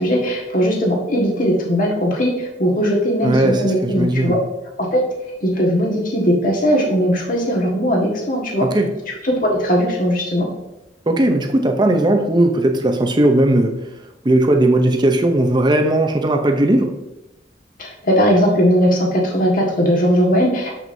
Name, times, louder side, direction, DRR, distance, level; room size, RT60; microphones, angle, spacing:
voice 1, 0.0-4.4 4.8-5.1 5.4-8.7 9.2-10.5 17.8-20.8, equal, 50° left, 1.6 m, -18 dB
voice 2, 3.2-4.4 8.6-8.9 11.1-13.9 14.2-17.0, right 1 dB, 25° right, 0.6 m, -17 dB
7.1 x 6.1 x 2.7 m
head